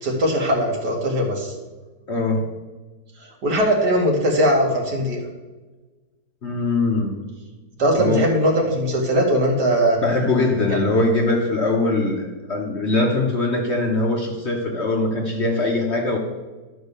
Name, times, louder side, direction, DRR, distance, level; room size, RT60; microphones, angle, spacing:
voice 1, 0.0-1.5 3.2-5.2 7.8-10.0 10.7-10.8, equal, 65° right, 0 dB, 2.3 m, -20 dB
voice 2, 2.1-2.5 6.4-7.2 7.9-8.3 10.0-16.2, left 2 dB, 45° left, 1 dB, 1.1 m, -21 dB
11.5 x 4.5 x 6.7 m, 1.2 s
omnidirectional pair, 1.9 m